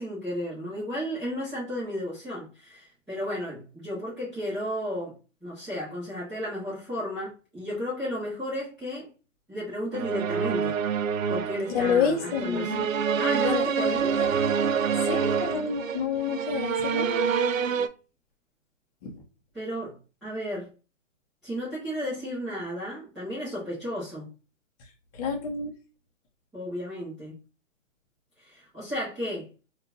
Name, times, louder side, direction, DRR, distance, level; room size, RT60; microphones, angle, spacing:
voice 1, 0.0-5.1 5.4-9.1 9.5-10.8 11.3-12.9 13.1-14.1 19.5-20.7 21.4-24.3 26.5-27.4 28.4-29.5, equal, ahead, -16 dB, 0.4 m, -33 dB
sound 1, 9.9-17.9, right 6 dB, 90° right, 0.5 m, -27 dB
voice 2, 11.7-12.9 13.4-14.3 15.1-17.3 19.0-19.1 25.1-25.7, left 6 dB, 30° left, 1 dB, 0.7 m, -29 dB
3.7 x 2.3 x 2.5 m, 0.33 s
hypercardioid pair, 135°, 38 cm